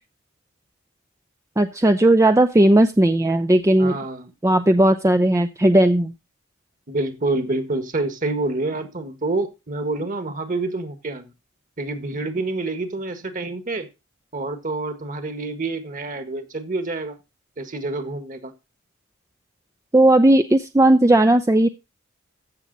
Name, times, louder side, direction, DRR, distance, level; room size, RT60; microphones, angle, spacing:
voice 1, 1.6-3.9 4.4-6.1 19.9-21.7, right 1 dB, 15° right, 9 dB, 0.5 m, -16 dB
voice 2, 3.8-4.3 6.9-11.2 11.8-13.9 14.3-17.2 17.6-18.5, right 2 dB, 40° right, 9 dB, 1.6 m, -27 dB
14.5 x 7.1 x 4.1 m, 0.27 s
head